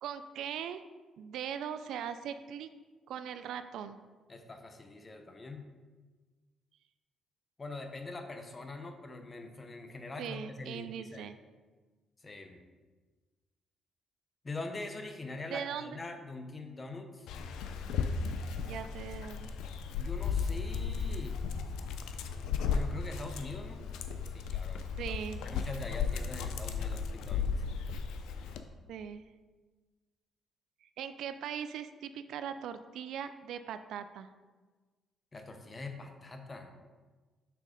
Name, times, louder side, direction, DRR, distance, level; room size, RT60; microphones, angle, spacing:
voice 1, 0.0-0.8 1.2-2.7 3.1-4.0 10.2-11.4 15.5-16.0 18.6-19.5 25.0-25.4 28.9-29.2 30.8-34.3, right 8 dB, 80° right, 11 dB, 0.3 m, -40 dB
voice 2, 4.3-5.7 7.6-11.3 12.2-12.6 14.4-17.3 20.0-21.4 22.7-23.9 24.3-25.1 25.4-27.6 35.3-36.7, left 2 dB, 30° left, 5 dB, 0.8 m, -43 dB
Dog, 17.3-28.6, left 6 dB, 85° left, 0.4 m, -35 dB
5.8 x 3.6 x 5.1 m, 1.3 s
cardioid pair, 90°, 0 cm